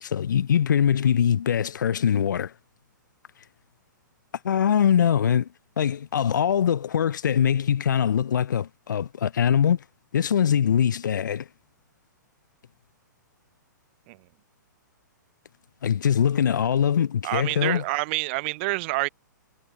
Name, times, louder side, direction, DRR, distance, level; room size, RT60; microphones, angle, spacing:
voice 1, 0.0-2.5 4.4-5.5 5.8-9.8 10.1-11.5 15.8-17.8, left 8 dB, 70° left, 0.4 m, -22 dB
voice 2, 17.2-19.1, right 25 dB, 35° right, 0.4 m, -27 dB
figure-of-eight pair, 120°, 10 cm